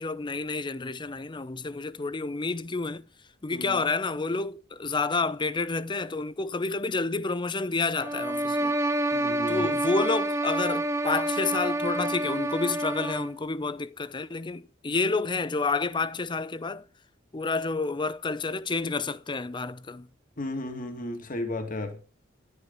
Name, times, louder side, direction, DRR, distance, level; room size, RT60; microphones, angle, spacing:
voice 1, 0.0-3.0 3.4-8.8 9.5-16.9 17.3-20.1, left 3 dB, 25° left, 0.6 m, -29 dB
voice 2, 3.5-3.8 9.1-9.7 20.4-22.0, left 1 dB, 45° left, 1.9 m, -34 dB
sound 1, 8.0-13.4, right 1 dB, 15° right, 0.8 m, -28 dB
11.0 x 9.5 x 5.3 m
head